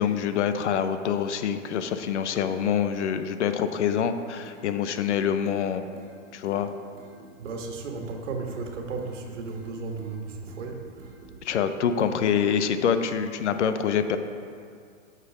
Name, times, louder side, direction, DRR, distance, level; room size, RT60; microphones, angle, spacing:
voice 1, 0.0-5.9 6.3-6.7 11.4-14.2, left 8 dB, 60° left, 9 dB, 0.8 m, -26 dB
sound 1, 4.4-4.6 4.9-5.6 5.9-6.1 6.4-6.6 6.9-7.6 7.9-8.1 8.5-8.6 9.0-9.7 10.0-10.2 10.5-10.7 11.0-11.6 12.0-12.2, right 2 dB, 20° right, 1.9 m, -50 dB
voice 2, 7.4-10.9, right 4 dB, 65° right, 3 dB, 1.6 m, -34 dB
9.3 x 6.7 x 4.9 m, 2.2 s
hypercardioid pair, 145°, 39 cm